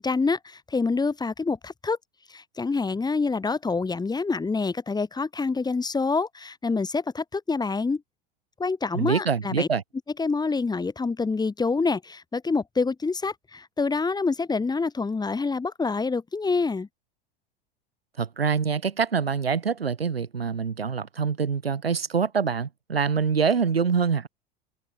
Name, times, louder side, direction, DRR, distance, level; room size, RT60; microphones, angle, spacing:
voice 1, 0.0-2.0 2.3-8.0 8.6-9.7 10.2-16.9, left 4 dB, 15° left, 2.6 m, -26 dB
voice 2, 8.9-9.8 18.2-24.3, right 6 dB, 90° right, 1.2 m, -25 dB
figure-of-eight pair, 85°, 29 cm